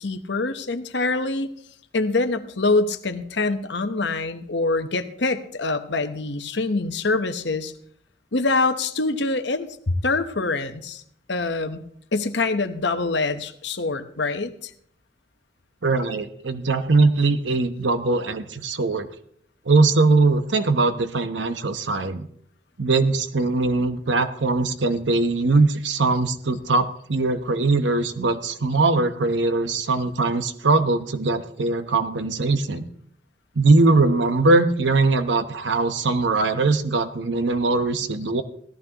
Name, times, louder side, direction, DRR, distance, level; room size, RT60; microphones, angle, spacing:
voice 1, 0.0-1.5 1.9-7.7 8.3-11.0 11.3-11.8 12.1-14.7, left 3 dB, 75° left, 8 dB, 1.0 m, -25 dB
voice 2, 15.8-19.1 19.7-22.3 22.8-32.9 33.5-38.4, right 3 dB, 80° right, 9 dB, 1.0 m, -21 dB
17.5 x 14.0 x 3.0 m, 0.65 s
head